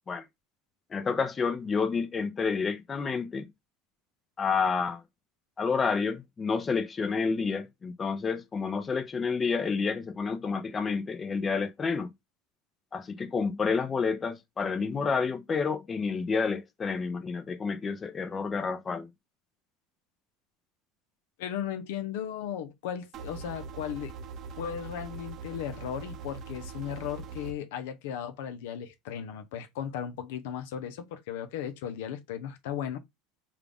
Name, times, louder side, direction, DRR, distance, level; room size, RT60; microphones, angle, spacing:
voice 1, 0.9-3.5 4.4-5.0 5.6-12.1 12.9-19.1, left 5 dB, 25° left, 0.6 m, -29 dB
voice 2, 21.4-24.1 24.6-33.0, left 9 dB, 80° left, 0.5 m, -36 dB
sound 1, 23.1-27.5, right 5 dB, 45° right, 0.6 m, -42 dB
3.7 x 2.3 x 3.4 m
supercardioid pair, 120°, 0 cm